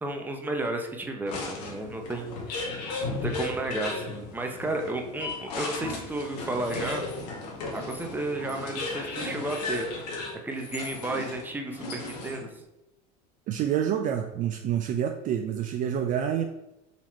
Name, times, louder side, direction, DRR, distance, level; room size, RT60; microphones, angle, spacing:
voice 1, 0.0-2.3 3.1-7.0 7.7-9.9 10.4-12.5, right 2 dB, 10° right, 3 dB, 0.7 m, -32 dB
sound 1, 1.3-12.6, left 3 dB, 80° left, 1.1 m, -35 dB
voice 2, 13.5-16.4, right 9 dB, 40° right, 5 dB, 0.4 m, -27 dB
4.1 x 3.0 x 4.3 m, 0.92 s
supercardioid pair, 100°, 20 cm